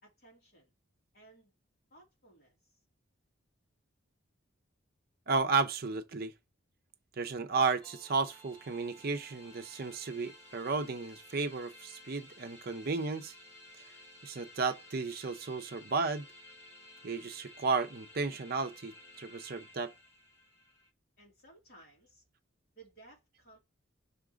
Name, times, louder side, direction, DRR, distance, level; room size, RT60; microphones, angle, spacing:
voice 1, 0.0-0.7 1.1-1.5 1.9-2.6 21.2-22.2 22.7-23.6, right 2 dB, 50° left, 3.1 m, -58 dB
voice 2, 5.3-6.3 7.2-13.3 14.2-16.3 17.0-18.9 19.2-19.9, right 4 dB, 50° right, 0.6 m, -33 dB
sound 1, 7.8-20.9, left 1 dB, 30° left, 1.3 m, -55 dB
5.7 x 3.7 x 5.0 m
head